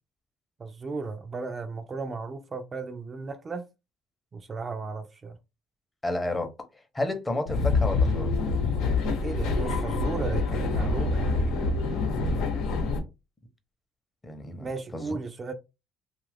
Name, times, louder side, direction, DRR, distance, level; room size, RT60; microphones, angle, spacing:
voice 1, 0.6-3.6 4.3-5.4 9.2-11.6 14.6-15.5, right 4 dB, 35° right, 0.4 m, -35 dB
voice 2, 6.0-6.5 6.9-8.3 14.2-14.7 14.9-15.2, left 1 dB, 15° left, 0.7 m, -31 dB
sound 1, 7.5-13.0, left 3 dB, 85° left, 0.9 m, -26 dB
2.8 x 2.4 x 3.3 m
cardioid pair, 95°, 0 cm